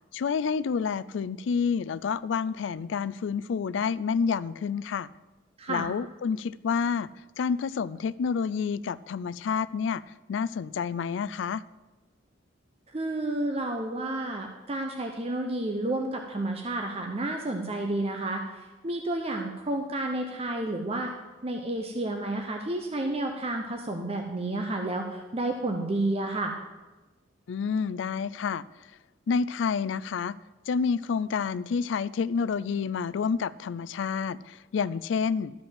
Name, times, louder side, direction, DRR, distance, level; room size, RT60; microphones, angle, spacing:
voice 1, 0.1-5.1 5.7-7.1 7.4-10.0 10.3-11.6 27.5-28.6 29.3-30.4 30.7-35.5, left 6 dB, 70° left, 19 dB, 0.3 m, -29 dB
voice 2, 12.9-18.4 18.8-21.1 21.4-26.5, right 2 dB, 30° right, 3 dB, 0.8 m, -30 dB
12.5 x 5.1 x 7.5 m, 1.2 s
head